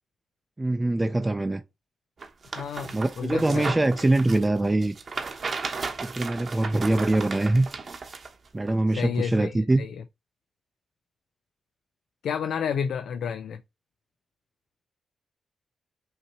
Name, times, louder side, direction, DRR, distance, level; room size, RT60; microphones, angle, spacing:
voice 1, 0.6-1.6 2.9-4.9 6.0-7.7 8.5-9.8, right 2 dB, 20° right, 0.5 m, -23 dB
sound 1, 2.2-8.3 8.7-8.8, right 4 dB, 50° right, 0.9 m, -35 dB
voice 2, 2.5-3.7 9.0-9.9 12.2-13.6, left 7 dB, 80° left, 0.4 m, -30 dB
5.6 x 2.9 x 3.0 m
cardioid pair, 80°, 0 cm